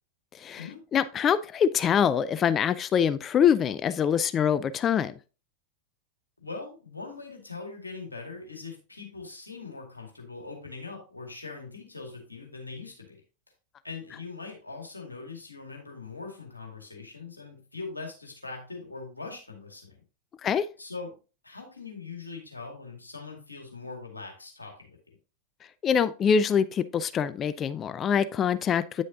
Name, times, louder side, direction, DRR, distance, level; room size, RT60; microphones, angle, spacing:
voice 1, 0.9-5.1 20.4-20.7 25.8-29.0, left 7 dB, 25° left, 0.4 m, -24 dB
voice 2, 6.4-13.2 13.8-20.0 20.8-21.1 21.4-25.2, left 4 dB, 80° left, 2.1 m, -41 dB
9.4 x 6.3 x 2.7 m
figure-of-eight pair, 90°, 0 cm